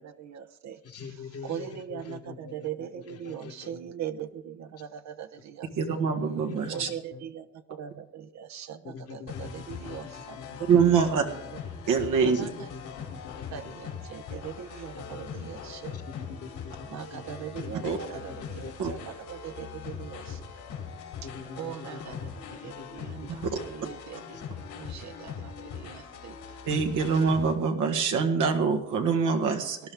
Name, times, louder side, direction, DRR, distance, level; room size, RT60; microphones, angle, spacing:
voice 1, 0.0-6.0 6.7-10.4 12.2-12.7 13.5-16.0 16.8-20.4 21.2-26.4, right 9 dB, 65° right, 8 dB, 0.9 m, -41 dB
voice 2, 0.8-2.5 3.1-3.8 6.0-6.3 6.6-6.9 7.1-7.2 8.8-10.6 12.3-13.6 14.9-15.2 15.9-16.7 17.1-17.2 17.6-17.7 18.1-18.8 21.2-22.9 23.2-23.3 24.3-24.4, left 5 dB, 50° left, 6 dB, 1.3 m, -44 dB
voice 3, 5.8-6.9 10.7-11.2 11.9-12.5 17.8-18.0 18.8-18.9 23.4-23.5 26.7-29.8, right 5 dB, 85° right, 4 dB, 1.8 m, -24 dB
sound 1, 9.3-27.5, left 6 dB, 85° left, 3.1 m, -41 dB
18.5 x 11.0 x 3.6 m, 0.87 s
cardioid pair, 90°, 30 cm